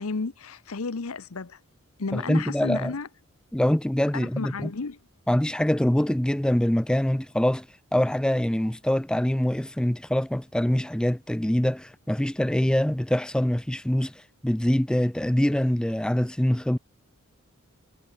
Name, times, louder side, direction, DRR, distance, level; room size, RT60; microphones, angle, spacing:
voice 1, 0.0-1.6 2.0-3.1 4.1-5.0, left 4 dB, 80° left, 0.9 m, -32 dB
voice 2, 2.1-2.9 3.5-4.7 5.3-7.7 7.9-16.8, left 1 dB, 5° left, 0.3 m, -24 dB
head